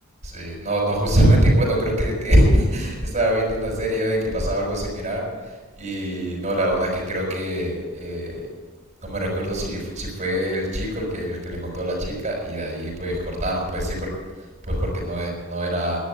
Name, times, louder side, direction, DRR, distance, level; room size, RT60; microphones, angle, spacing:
voice 1, 0.2-5.2 5.8-8.4 9.0-14.1 14.7-16.0, right 1 dB, 35° right, -2 dB, 5.6 m, -23 dB
12.0 x 11.5 x 8.2 m, 1.3 s
head